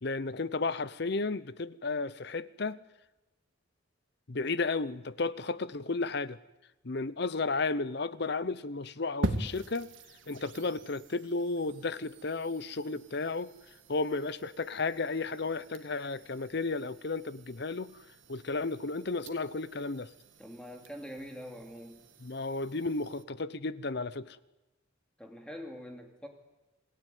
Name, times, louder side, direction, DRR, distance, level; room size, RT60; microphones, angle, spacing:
voice 1, 0.0-2.8 4.3-6.4 6.8-9.9 10.3-13.5 13.9-18.0 18.3-20.1 22.2-24.4, left 3 dB, 55° left, 0.8 m, -33 dB
sound 1, 9.2-23.2, right 1 dB, 70° right, 1.9 m, -43 dB
voice 2, 20.4-22.0 25.2-26.3, equal, 5° left, 2.5 m, -44 dB
27.5 x 17.0 x 9.3 m
head